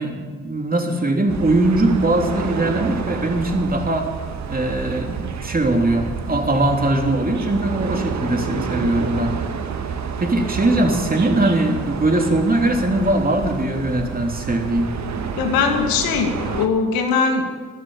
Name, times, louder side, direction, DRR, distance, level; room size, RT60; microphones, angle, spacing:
voice 1, 0.0-4.1 4.5-9.3 10.2-14.9, right 1 dB, 25° right, 3 dB, 3.2 m, -20 dB
sound 1, 1.3-16.7, right 6 dB, 45° right, 1.6 m, -29 dB
voice 2, 15.4-17.5, left 5 dB, 70° left, 4 dB, 2.1 m, -20 dB
13.0 x 12.5 x 8.8 m, 1.5 s
hypercardioid pair, 45°, 37 cm